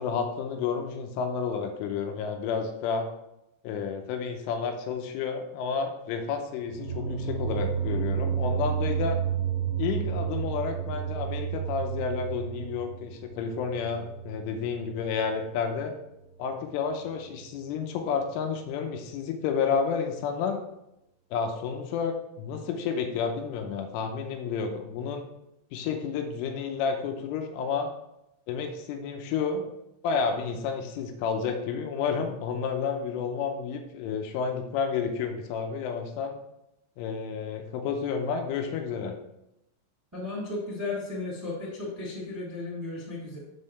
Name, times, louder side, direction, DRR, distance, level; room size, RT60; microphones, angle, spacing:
voice 1, 0.0-3.1 3.6-9.2 9.8-15.9 16.4-20.6 21.3-25.3 25.7-27.9 28.5-29.7 30.0-36.4 37.0-39.1, left 6 dB, 90° left, 5 dB, 3.3 m, -30 dB
sound 1, 6.7-15.6, right 9 dB, 70° right, 0.8 m, -31 dB
voice 2, 40.1-43.4, left 2 dB, 10° right, -6 dB, 1.0 m, -34 dB
7.6 x 7.1 x 3.3 m, 0.87 s
omnidirectional pair, 5.6 m